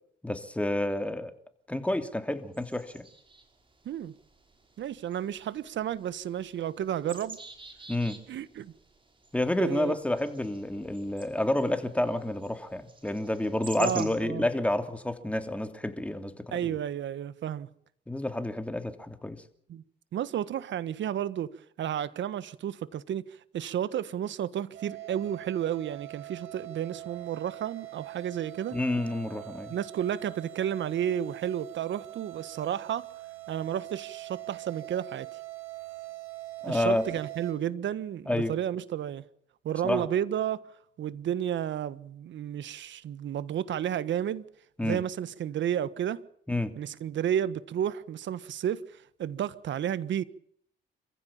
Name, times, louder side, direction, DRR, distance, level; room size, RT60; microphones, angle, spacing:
voice 1, 0.2-1.3 1.7-3.1 7.9-8.2 9.3-16.8 18.1-19.4 28.7-29.7 36.6-37.0 38.3-38.5 39.8-40.1 44.8-45.0 46.5-46.7, left 1 dB, 5° left, 2.9 m, -29 dB
sound 1, 2.5-14.1, right 3 dB, 25° right, 5.6 m, -49 dB
voice 2, 4.8-7.4 8.3-8.7 9.6-9.9 13.8-14.5 16.5-17.7 19.7-19.8 20.1-23.2 23.5-28.8 29.7-33.1 33.5-35.3 36.7-39.2 39.6-40.6 41.0-44.4 44.8-46.2 46.8-50.2, right 10 dB, 70° right, 1.5 m, -32 dB
sound 2, 24.7-37.5, right 19 dB, 90° right, 4.1 m, -43 dB
27.0 x 15.5 x 7.3 m
cardioid pair, 90°, 20 cm